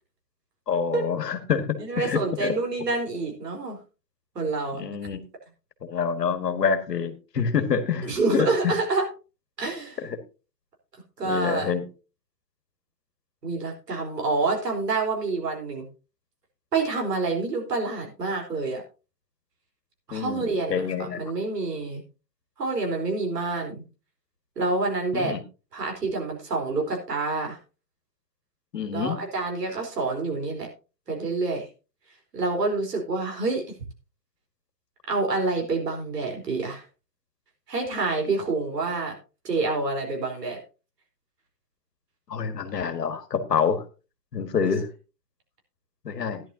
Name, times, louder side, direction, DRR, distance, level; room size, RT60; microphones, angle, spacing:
voice 1, 0.7-2.5 4.7-5.2 5.8-8.7 11.2-11.8 20.1-21.2 25.1-25.4 28.7-29.2 42.3-43.8 44.3-44.9 46.1-46.4, left 6 dB, 80° left, 9 dB, 1.8 m, -27 dB
voice 2, 1.8-3.8 4.3-4.8 8.0-9.1 9.6-10.0 11.2-11.7 13.4-15.9 16.7-18.8 20.1-22.0 22.6-23.8 24.6-25.3 25.7-27.6 28.9-30.7 31.1-31.7 32.3-33.6 35.1-36.8 37.7-39.1 39.4-40.6 44.6-44.7, right 3 dB, 80° right, 1 dB, 4.2 m, -27 dB
14.0 x 11.0 x 2.8 m, 0.32 s
hypercardioid pair, 115°, 48 cm